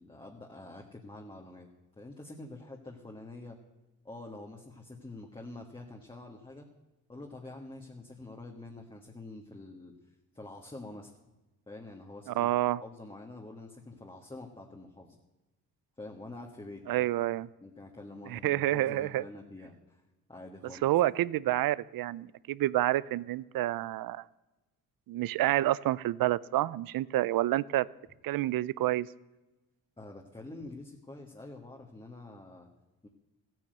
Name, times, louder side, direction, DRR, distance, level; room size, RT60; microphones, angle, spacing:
voice 1, 0.0-1.7 2.0-3.6 4.0-6.7 7.1-9.9 10.3-11.1 11.7-12.5 12.8-15.2 16.0-17.1 17.6-20.0 20.3-20.9 30.0-32.7 33.0-33.1, left 2 dB, 15° left, 0 dB, 1.7 m, -46 dB
voice 2, 12.4-12.8 16.9-17.5 18.3-19.2 20.8-24.2 25.1-27.9 28.2-29.1, right 15 dB, 70° right, 21 dB, 0.6 m, -28 dB
14.5 x 9.3 x 7.9 m, 1.1 s
cardioid pair, 85°, 36 cm